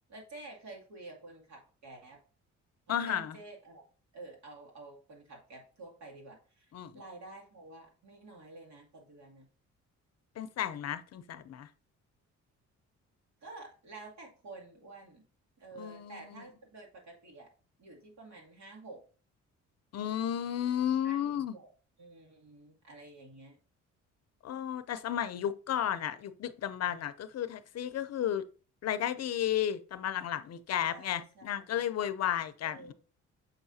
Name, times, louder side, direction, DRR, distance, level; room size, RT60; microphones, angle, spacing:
voice 1, 0.1-2.2 2.9-3.9 4.1-9.5 13.4-15.2 15.6-17.5 17.8-19.0 21.0-21.7 22.0-23.6 30.8-31.8 32.6-32.9, right 2 dB, 65° right, 2.6 m, -50 dB
voice 2, 2.9-3.4 6.7-6.9 10.4-11.7 15.8-16.4 19.9-21.5 24.4-28.4 28.8-32.9, left 10 dB, 55° left, 0.6 m, -33 dB
7.0 x 5.6 x 2.7 m
cardioid pair, 90°, 30 cm